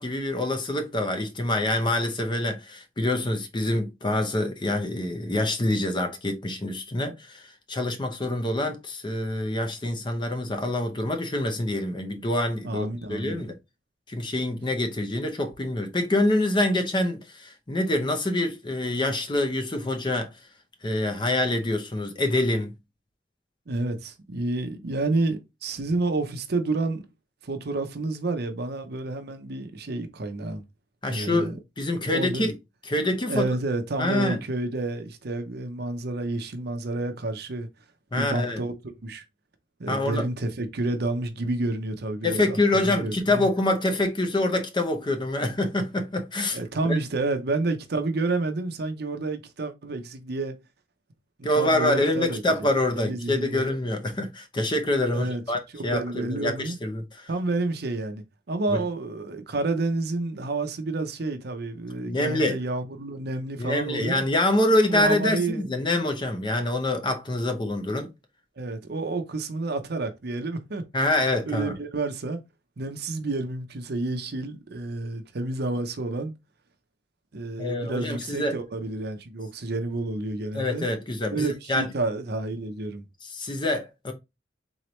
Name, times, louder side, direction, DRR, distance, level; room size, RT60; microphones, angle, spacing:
voice 1, 0.0-13.6 14.1-20.3 20.8-22.7 31.0-32.6 32.8-33.5 34.0-34.4 38.1-38.6 39.9-40.3 42.2-46.6 46.9-47.0 51.4-57.3 58.7-58.8 62.1-62.6 63.6-68.1 70.9-71.7 77.6-78.6 80.5-81.9 83.2-84.1, left 1 dB, 25° left, 0.6 m, -26 dB
voice 2, 12.6-13.4 23.7-27.0 27.4-30.6 31.1-31.5 32.1-32.5 33.3-37.7 38.1-38.7 39.0-39.2 39.8-43.5 46.5-50.5 51.6-52.4 53.0-53.7 55.1-55.4 55.7-56.8 57.3-64.2 64.9-65.7 68.6-70.8 71.5-72.4 72.8-76.3 77.3-80.9 81.3-83.0, right 2 dB, 60° right, 0.7 m, -29 dB
3.9 x 3.2 x 3.0 m
head